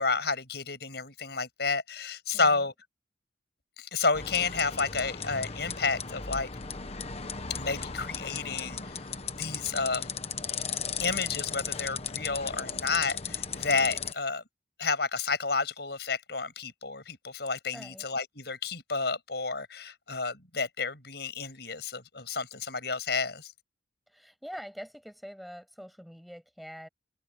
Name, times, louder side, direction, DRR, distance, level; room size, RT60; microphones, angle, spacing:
voice 1, 0.0-2.7 3.8-6.5 7.6-9.1 9.3-10.1 11.0-14.4 14.8-23.5, left 4 dB, 60° left, 7.9 m, -31 dB
voice 2, 2.3-2.7 17.7-18.1 24.1-26.9, equal, ahead, 7.6 m, -44 dB
sound 1, 4.1-14.1, left 6 dB, 35° left, 1.3 m, -36 dB
head